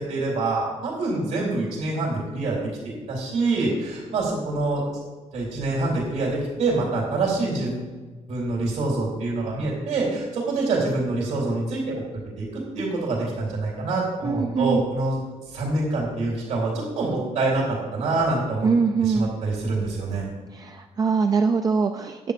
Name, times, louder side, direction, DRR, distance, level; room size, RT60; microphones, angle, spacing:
voice 1, 0.0-2.6 3.1-4.8 5.3-7.9 8.3-11.9 12.4-15.2 15.5-18.7 19.0-20.3, right 3 dB, 75° right, -3 dB, 3.4 m, -26 dB
voice 2, 14.2-14.8 18.6-19.3 20.5-22.2, right 5 dB, 30° right, 6 dB, 0.4 m, -22 dB
10.0 x 8.3 x 5.1 m, 1.3 s
cardioid pair, 170°, 12 cm